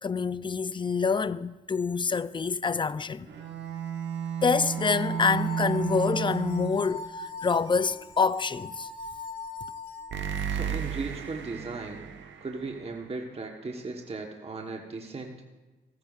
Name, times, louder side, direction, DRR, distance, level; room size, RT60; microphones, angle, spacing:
voice 1, 0.0-3.3 4.4-8.9, left 5 dB, 25° left, 0.4 m, -27 dB
Bowed string instrument, 3.2-7.1, right 9 dB, 70° right, 1.4 m, -32 dB
sound 1, 4.6-10.4, left 3 dB, 70° left, 2.6 m, -41 dB
sound 2, 4.6-5.3 10.1-13.8, right 8 dB, 85° right, 1.0 m, -36 dB
voice 2, 10.5-12.1 12.4-15.4, right 3 dB, 35° right, 1.2 m, -37 dB
15.5 x 14.0 x 2.5 m
cardioid pair, 65°, 19 cm